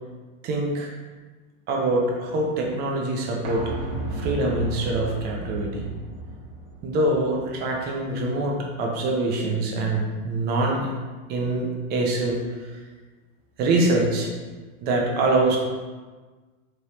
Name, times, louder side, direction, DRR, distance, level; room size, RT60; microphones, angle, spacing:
voice 1, 0.4-0.9 1.7-3.7 4.1-5.9 6.8-10.8 11.3-12.8 13.6-14.3 14.8-15.6, right 2 dB, 25° right, 0 dB, 0.5 m, -24 dB
sound 1, 3.4-9.1 9.4-9.5, right 1 dB, 45° right, 1.1 m, -35 dB
4.1 x 3.4 x 2.9 m, 1.4 s
supercardioid pair, 140°, 43 cm